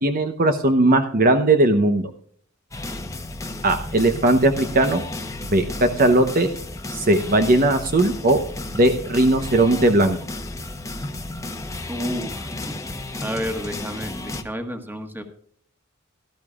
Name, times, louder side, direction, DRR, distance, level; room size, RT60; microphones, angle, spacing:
voice 1, 0.0-2.1 3.6-5.0 5.5-6.5 6.9-8.4 8.7-10.2, right 2 dB, 45° right, 6 dB, 0.9 m, -18 dB
sound 1, 2.7-14.4, left 2 dB, 15° left, 1.0 m, -33 dB
voice 2, 11.9-12.6 13.2-15.2, equal, 10° right, 5 dB, 1.5 m, -30 dB
17.5 x 12.5 x 2.4 m, 0.62 s
head